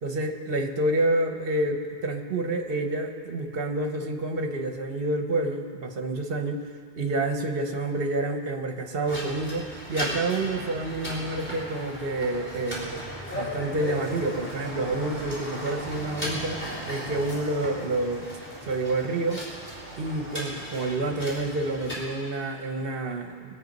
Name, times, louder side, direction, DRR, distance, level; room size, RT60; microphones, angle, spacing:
voice 1, 0.0-6.6 7.0-13.0 13.3-18.3 18.6-19.4 20.0-23.6, right 2 dB, 60° right, 5 dB, 1.2 m, -28 dB
sound 1, 9.0-22.0, equal, 10° left, 3.5 m, -36 dB
22.0 x 8.4 x 5.3 m, 2.2 s
omnidirectional pair, 1.1 m